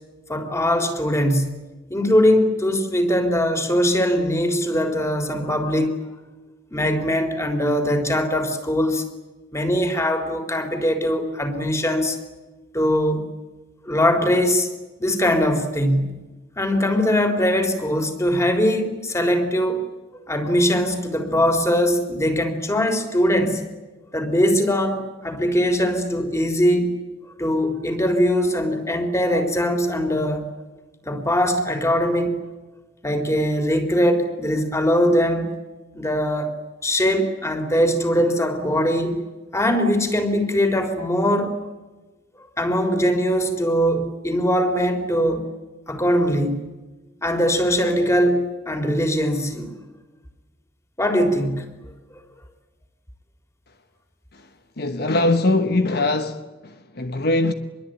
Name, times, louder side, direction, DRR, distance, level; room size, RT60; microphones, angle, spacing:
voice 1, 0.3-6.0 6.7-9.1 9.5-12.2 12.7-13.3 13.9-14.7 15.0-16.3 16.6-19.8 20.3-23.6 24.1-27.0 27.4-30.5 31.0-32.4 33.0-35.5 35.9-36.6 36.8-39.2 39.5-41.6 42.6-45.4 45.9-46.6 47.2-49.7 51.0-51.7, equal, 15° left, 3.7 m, -21 dB
voice 2, 54.8-57.5, left 2 dB, 60° left, 1.2 m, -22 dB
26.0 x 22.5 x 9.0 m
head